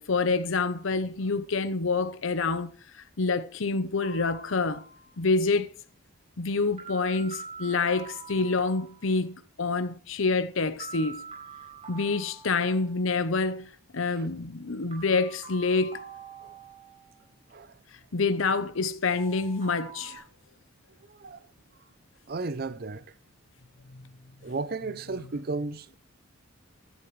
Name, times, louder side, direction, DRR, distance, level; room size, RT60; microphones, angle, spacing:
voice 1, 0.0-2.7 3.2-4.8 5.2-5.7 6.4-11.2 11.9-16.0 18.1-20.2, left 4 dB, 70° left, 0.8 m, -27 dB
sound 1, 4.0-5.1 6.8-9.1 10.8-13.1 14.9-17.2 19.1-20.2, right 4 dB, 30° right, 4.5 m, -45 dB
voice 2, 21.1-21.4 22.3-23.0 24.4-25.9, right 3 dB, 45° right, 0.6 m, -34 dB
15.5 x 11.0 x 3.2 m
head